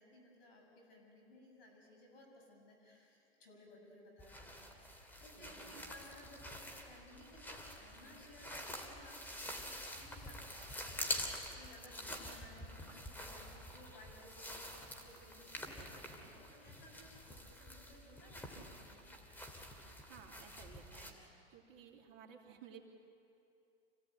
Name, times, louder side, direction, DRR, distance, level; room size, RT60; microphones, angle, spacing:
voice 1, 0.0-19.1, left 1 dB, 60° left, 1 dB, 7.8 m, -60 dB
sound 1, 4.2-21.1, left 1 dB, 5° left, 2.8 m, -47 dB
voice 2, 5.4-5.8 20.0-21.2 21.5-22.8, right 8 dB, 45° right, 1 dB, 3.0 m, -56 dB
26.5 x 17.0 x 9.1 m, 2.7 s
hypercardioid pair, 115°, 34 cm